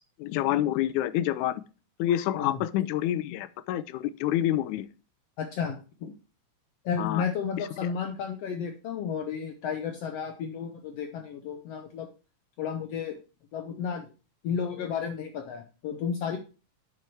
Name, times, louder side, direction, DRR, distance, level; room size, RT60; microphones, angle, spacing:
voice 1, 0.2-1.6 2.0-4.9 7.0-7.2 7.6-7.7, left 12 dB, 85° left, 14 dB, 2.0 m, -27 dB
voice 2, 5.4-6.1 6.9-12.1 12.6-13.2 13.5-14.1 14.4-16.4, left 7 dB, 70° left, 5 dB, 1.7 m, -32 dB
7.8 x 5.7 x 4.7 m, 0.33 s
omnidirectional pair, 3.5 m